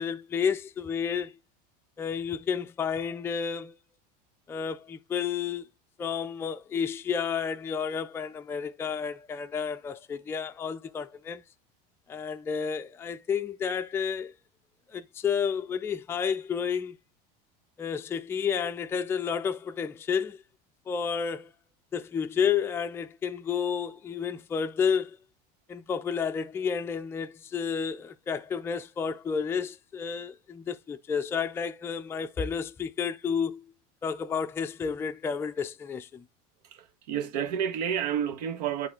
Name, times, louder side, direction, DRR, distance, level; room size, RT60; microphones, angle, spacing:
voice 1, 0.0-1.3 2.0-3.7 4.5-5.7 6.0-11.4 12.1-14.3 14.9-17.0 17.8-20.4 20.9-21.5 21.9-25.2 25.7-33.6 34.0-36.2, left 6 dB, 10° left, 0.4 m, -31 dB
voice 2, 36.6-38.9, right 8 dB, 85° right, 1.3 m, -30 dB
8.6 x 3.3 x 4.3 m
supercardioid pair, 150°, 20 cm